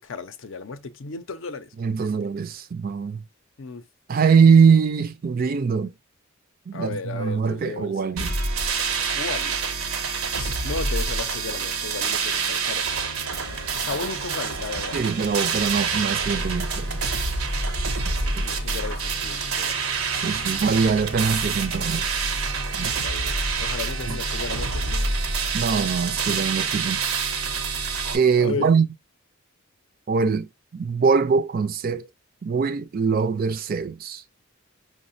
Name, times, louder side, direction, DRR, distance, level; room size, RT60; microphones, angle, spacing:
voice 1, 0.0-2.3 3.6-3.8 6.7-8.4 9.0-9.6 10.3-12.9 13.8-15.0 18.2-20.0 23.0-25.2 28.4-28.7, left 4 dB, 65° left, 0.5 m, -35 dB
voice 2, 1.8-3.2 4.1-5.9 6.7-8.3 14.9-17.0 18.4-18.5 20.2-22.3 22.8-23.0 24.1-24.2 25.5-27.0 28.1-28.9 30.1-32.1 32.4-34.2, right 5 dB, 45° right, 0.4 m, -22 dB
sound 1, 8.2-28.2, right 4 dB, 85° right, 0.7 m, -27 dB
sound 2, 13.3-25.6, left 2 dB, 25° left, 0.7 m, -44 dB
5.5 x 2.1 x 2.5 m
head